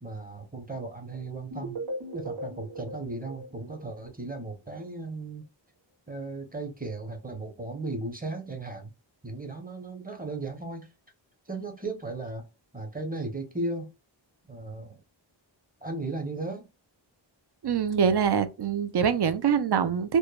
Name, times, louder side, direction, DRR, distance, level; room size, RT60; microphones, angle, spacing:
voice 1, 0.0-1.8 2.1-5.4 6.1-8.9 9.2-10.9 11.5-12.4 12.7-13.9 14.5-15.0 15.8-16.6, right 2 dB, 20° right, 0.7 m, -36 dB
sound 1, 1.5-4.4, right 1 dB, 85° right, 1.0 m, -38 dB
voice 2, 17.6-20.2, right 7 dB, 60° right, 0.5 m, -24 dB
2.9 x 2.1 x 2.2 m
wide cardioid pair, 50°, 47 cm